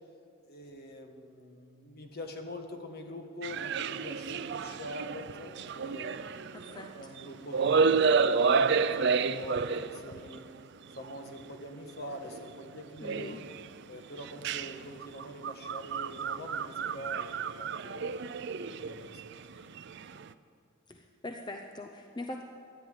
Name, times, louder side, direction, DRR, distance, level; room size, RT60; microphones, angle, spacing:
voice 1, 0.4-6.2 6.9-10.5 11.0-13.4 13.9-18.2 18.7-19.7, left 1 dB, 50° left, 4 dB, 1.5 m, -44 dB
sound 1, 3.4-7.2 7.5-10.4 11.0-11.2 12.1-12.4 13.0-13.7 14.2-20.2, right 5 dB, 60° right, 0.5 m, -30 dB
voice 2, 6.5-6.9 13.0-13.4 20.9-22.4, left 2 dB, 20° left, 3 dB, 0.7 m, -42 dB
13.5 x 10.5 x 9.5 m, 2.5 s
head